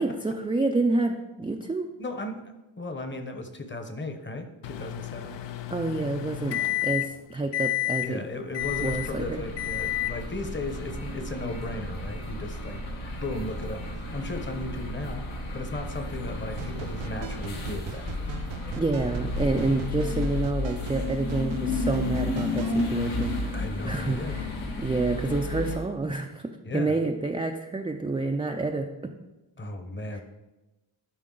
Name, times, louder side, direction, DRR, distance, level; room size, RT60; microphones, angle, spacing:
voice 1, 0.0-1.9 5.7-8.2 8.8-9.4 18.8-23.6 23.8-24.5 24.8-29.1 30.1-30.2, right 3 dB, 15° right, 3 dB, 0.3 m, -28 dB
voice 2, 2.0-2.4 2.8-5.4 8.0-12.8 13.2-15.2 15.5-18.3 23.5-24.4 26.6-27.0 29.6-30.2, left 2 dB, 25° left, 7 dB, 0.9 m, -35 dB
Microwave oven, 4.6-7.2 7.5-8.1 8.5-9.1 9.6-10.2, left 16 dB, 65° left, 0.6 m, -30 dB
sound 1, 8.6-25.8, left 2 dB, 80° left, 1.7 m, -32 dB
sound 2, 16.6-23.4, right 12 dB, 75° right, 0.5 m, -41 dB
11.5 x 5.3 x 3.8 m, 1.0 s
wide cardioid pair, 120°, 47 cm